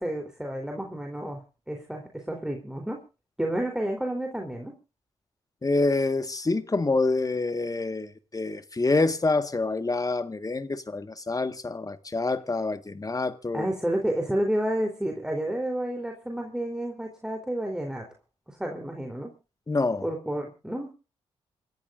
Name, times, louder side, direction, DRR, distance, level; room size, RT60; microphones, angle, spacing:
voice 1, 0.0-1.4 1.7-3.0 3.4-4.8 13.5-18.1 18.5-19.3 20.0-20.9, right 1 dB, 5° right, 3.8 m, -30 dB
voice 2, 5.6-13.7 19.7-20.0, left 3 dB, 30° left, 1.7 m, -27 dB
27.5 x 14.0 x 2.6 m
hypercardioid pair, 45°, 13 cm